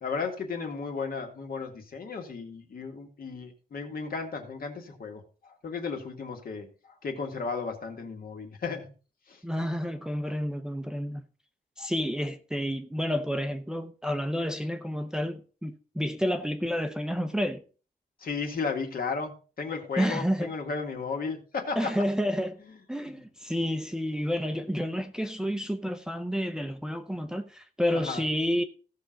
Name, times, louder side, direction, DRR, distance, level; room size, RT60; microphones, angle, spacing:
voice 1, 0.0-8.8 9.3-9.4 11.8-11.9 18.2-19.3 19.6-21.9 27.9-28.2, left 4 dB, 60° left, 2.1 m, -34 dB
voice 2, 9.4-11.2 11.8-17.6 20.0-20.5 21.8-22.6 22.9-28.6, equal, 5° right, 0.7 m, -30 dB
16.0 x 6.2 x 3.9 m
wide cardioid pair, 150°, 17 cm